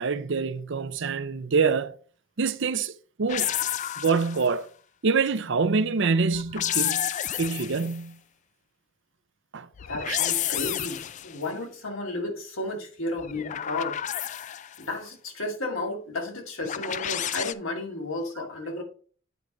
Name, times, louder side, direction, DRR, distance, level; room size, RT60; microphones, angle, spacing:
voice 1, 0.0-1.9 2.4-2.9 3.2-3.5 4.0-4.7 5.0-7.1 7.4-8.2 9.5-9.7 10.0-10.2, right 5 dB, 60° right, 0.6 m, -25 dB
sound 1, 3.3-4.6 6.3-8.0 9.8-11.4 13.2-14.8 16.6-17.5, left 11 dB, 35° left, 0.3 m, -30 dB
voice 2, 9.8-14.0 14.8-18.8, left 2 dB, 80° left, 2.4 m, -33 dB
9.1 x 4.7 x 3.9 m
head